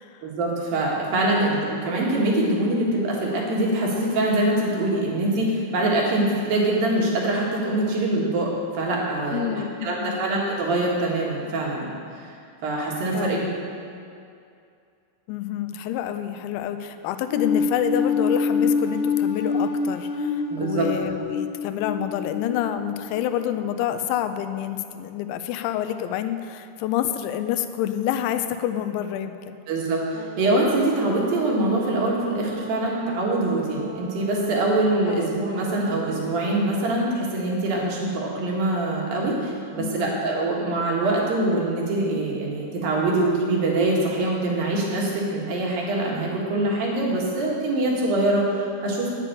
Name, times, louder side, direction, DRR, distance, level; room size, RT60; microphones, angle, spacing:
voice 1, 0.2-12.3 12.6-13.4 20.5-20.9 29.7-49.1, right 2 dB, 60° right, -3 dB, 3.1 m, -24 dB
voice 2, 9.3-10.2 13.1-13.5 15.3-29.6 35.1-35.2 39.8-40.2, left 11 dB, 85° left, 9 dB, 2.9 m, -28 dB
sound 1, 17.3-23.7, left 5 dB, 70° left, 2.0 m, -26 dB
Brass instrument, 30.1-36.5, right 8 dB, 85° right, 3.2 m, -39 dB
9.8 x 8.1 x 6.8 m, 2.5 s
omnidirectional pair, 5.2 m